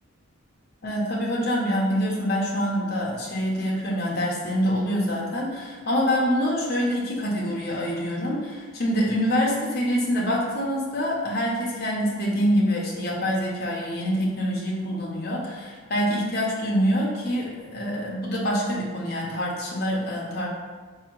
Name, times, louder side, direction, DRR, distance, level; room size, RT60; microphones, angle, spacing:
voice 1, 0.8-20.5, equal, 45° left, -3 dB, 0.7 m, -25 dB
3.9 x 2.7 x 3.0 m, 1.4 s
head